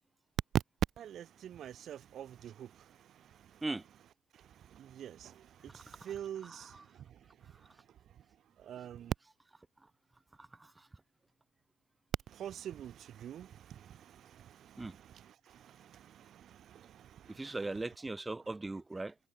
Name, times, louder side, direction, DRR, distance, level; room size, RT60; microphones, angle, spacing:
voice 1, 1.0-2.7 4.7-5.4 5.7-6.7 8.7-9.1 12.3-14.0 14.4-14.8 15.8-15.9 16.3-16.9, right 10 dB, 50° right, 1.0 m, -44 dB
voice 2, 5.7-6.9 10.4-10.9 14.8-15.0 17.3-19.1, right 2 dB, 15° right, 1.3 m, -40 dB
cardioid pair, 110°, 0 cm